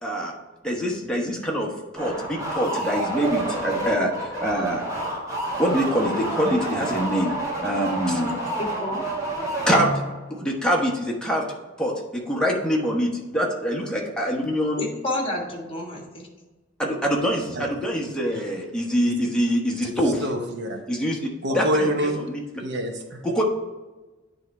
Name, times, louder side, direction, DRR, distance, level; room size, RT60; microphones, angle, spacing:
voice 1, 0.0-0.3 0.6-4.8 5.6-7.3 7.6-8.4 9.7-9.9 10.3-11.5 11.8-14.9 16.8-20.2 20.9-21.2 21.5-21.9 22.3-22.4 23.2-23.4, equal, 5° left, -2 dB, 1.2 m, -24 dB
sound 1, 2.0-10.3, right 1 dB, 15° right, 1.8 m, -29 dB
voice 2, 8.6-9.0 14.8-16.3 21.5-21.9, left 1 dB, 30° left, 0 dB, 1.5 m, -30 dB
voice 3, 20.2-20.8 21.4-22.2 22.6-23.3, equal, 60° right, 4 dB, 0.9 m, -27 dB
9.4 x 3.5 x 4.2 m, 1.2 s
head